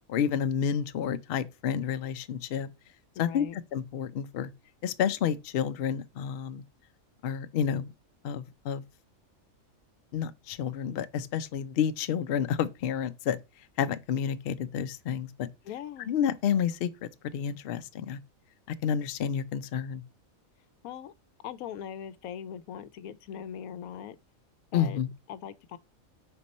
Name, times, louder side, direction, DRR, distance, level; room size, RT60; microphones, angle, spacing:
voice 1, 0.1-2.7 3.2-4.5 4.8-6.6 7.2-7.9 8.2-8.8 10.1-13.4 13.8-15.5 16.1-18.2 18.8-20.0 24.7-25.1, left 8 dB, 60° left, 0.6 m, -30 dB
voice 2, 3.2-3.6 15.6-16.1 20.8-21.1 21.4-24.2 24.7-25.0 25.3-25.8, left 9 dB, 80° left, 1.0 m, -40 dB
4.4 x 4.2 x 5.2 m
omnidirectional pair, 1.5 m